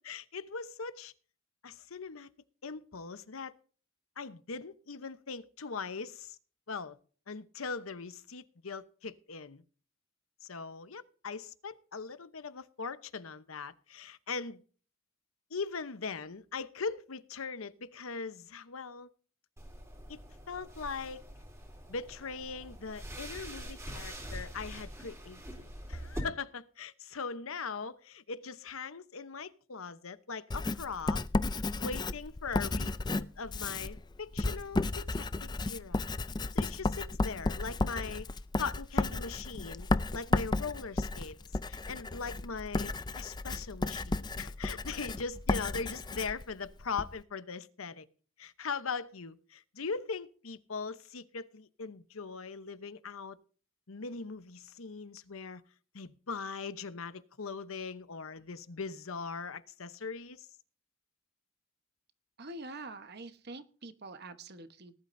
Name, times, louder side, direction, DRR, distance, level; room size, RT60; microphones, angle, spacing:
voice 1, 0.0-1.1 1.6-2.3 2.6-3.5 4.2-6.4 6.7-7.0 7.3-9.6 10.4-14.6 15.5-19.1 20.1-21.2 21.9-31.2 31.8-36.1 36.5-38.3 38.6-41.4 41.7-48.1 48.4-53.4 53.9-55.6 55.9-60.5, left 5 dB, 85° left, 0.9 m, -40 dB
sound 1, 19.6-26.2, equal, 15° right, 3.3 m, -44 dB
Writing, 30.5-47.1, left 2 dB, 20° left, 0.4 m, -33 dB
voice 2, 62.4-64.9, right 2 dB, 50° right, 1.2 m, -45 dB
19.0 x 11.5 x 2.7 m
head